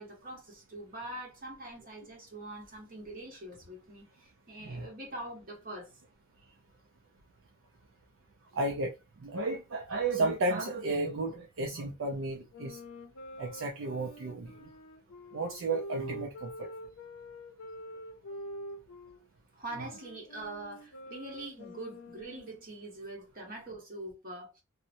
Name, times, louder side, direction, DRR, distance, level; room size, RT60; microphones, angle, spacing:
voice 1, 0.0-5.9 19.5-24.6, right 2 dB, 45° right, 1.1 m, -44 dB
voice 2, 8.5-8.9 9.2-12.8 13.4-14.5 15.3-16.7, right 2 dB, 65° right, 0.4 m, -33 dB
sound 1, 12.5-19.2 19.7-22.6, equal, 85° left, 0.6 m, -46 dB
2.8 x 2.1 x 2.6 m
head